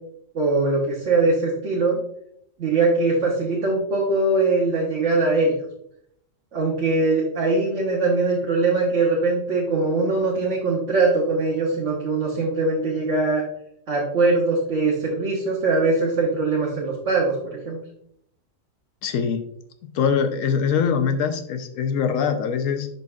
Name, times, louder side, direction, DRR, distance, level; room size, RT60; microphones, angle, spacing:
voice 1, 0.3-2.0 2.6-5.5 6.5-13.4 13.9-17.8, right 3 dB, 65° right, -3 dB, 1.3 m, -21 dB
voice 2, 19.0-19.4 19.8-22.9, left 6 dB, 80° left, 8 dB, 1.0 m, -23 dB
11.0 x 4.0 x 2.3 m, 0.72 s
omnidirectional pair, 1.4 m